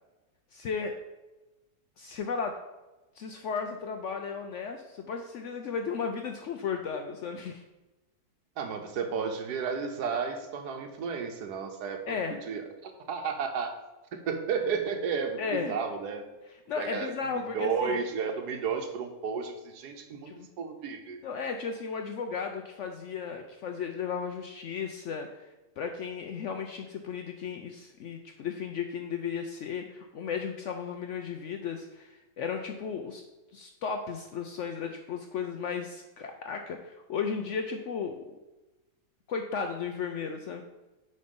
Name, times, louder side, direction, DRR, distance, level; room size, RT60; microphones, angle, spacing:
voice 1, 0.5-1.0 2.0-2.6 3.2-7.6 12.1-12.4 15.4-15.8 16.7-18.0 20.3-20.5 21.2-33.2 33.5-38.2 39.3-40.6, left 6 dB, 70° left, 5 dB, 0.7 m, -35 dB
voice 2, 8.6-12.2 12.5-13.8 14.1-16.2 16.8-21.2, right 5 dB, 80° right, 5 dB, 1.4 m, -33 dB
8.2 x 3.2 x 5.3 m, 1.1 s
omnidirectional pair, 1.7 m